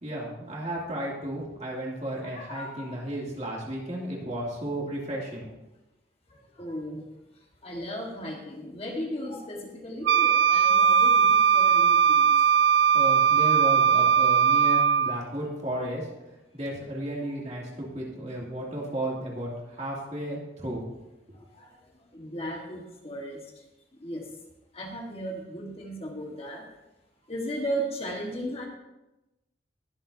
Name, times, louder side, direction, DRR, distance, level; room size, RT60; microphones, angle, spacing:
voice 1, 0.0-5.5 12.9-16.1 16.5-20.9, right 1 dB, 35° right, -3 dB, 2.5 m, -33 dB
voice 2, 2.2-2.9 6.6-7.0 7.6-12.3 13.5-13.7 21.5-21.7 22.1-23.4 24.0-24.2 24.7-26.6 27.3-28.7, equal, 30° left, 0 dB, 1.5 m, -36 dB
Wind instrument woodwind instrument, 10.1-15.2, right 7 dB, 80° right, 0.3 m, -20 dB
21.0 x 7.5 x 2.7 m, 0.99 s
head